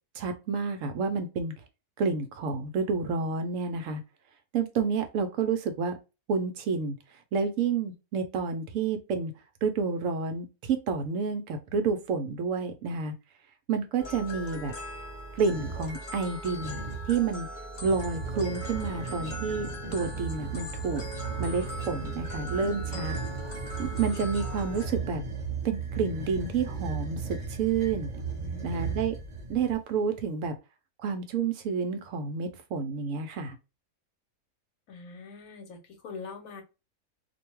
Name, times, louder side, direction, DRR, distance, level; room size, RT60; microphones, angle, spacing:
voice 1, 0.2-1.5 2.0-4.0 4.5-6.0 6.3-7.0 7.3-9.3 9.6-13.1 13.7-14.7 15.3-16.8 17.1-17.5 17.8-21.1 21.4-23.1 23.8-25.2 25.6-28.1 28.6-29.1 29.5-30.5 31.0-33.6, right 5 dB, 70° right, 0.9 m, -29 dB
sound 1, 14.0-24.9, equal, 45° left, 0.6 m, -40 dB
sound 2, 15.4-15.9 16.5-17.2 17.8-29.8, right 5 dB, 35° right, 0.8 m, -36 dB
voice 2, 28.2-28.9 34.9-36.6, left 4 dB, 70° left, 1.2 m, -43 dB
2.6 x 2.2 x 2.9 m
omnidirectional pair, 1.5 m